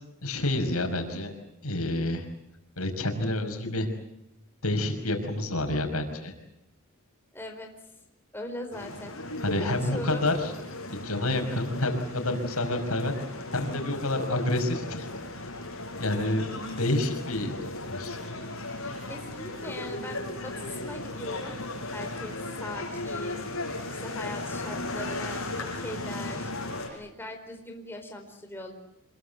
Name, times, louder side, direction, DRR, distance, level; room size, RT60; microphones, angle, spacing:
voice 1, 0.2-1.3 1.6-2.3 2.8-3.9 4.6-6.3 9.4-10.5 10.9-13.1 13.5-15.5 16.0-18.2, left 1 dB, 85° left, 5 dB, 5.5 m, -29 dB
voice 2, 7.3-7.7 8.3-9.2 9.6-10.3 11.3-11.7 15.4-15.7 19.1-21.6 21.9-26.5 26.9-28.7, left 1 dB, 10° left, 3 dB, 4.4 m, -40 dB
sound 1, 8.7-26.9, left 2 dB, 65° left, 7.0 m, -36 dB
27.0 x 22.5 x 8.1 m, 0.84 s
head